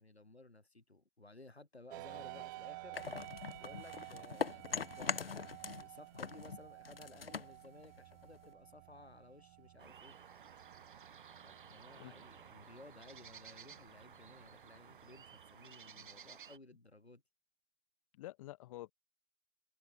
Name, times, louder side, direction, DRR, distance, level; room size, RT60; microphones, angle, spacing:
voice 1, 0.0-3.0 3.6-10.2 11.4-17.2, left 2 dB, 80° left, 4.4 m, -57 dB
sound 1, 1.9-15.5, right 21 dB, 20° right, 0.8 m, -53 dB
sound 2, 2.9-5.9 6.1-8.5, left 6 dB, 65° left, 1.1 m, -42 dB
sound 3, 9.8-16.6, right 7 dB, 55° right, 5.8 m, -56 dB
voice 2, 18.2-18.9, left 16 dB, 30° left, 3.1 m, -49 dB
figure-of-eight pair, 130°, 31 cm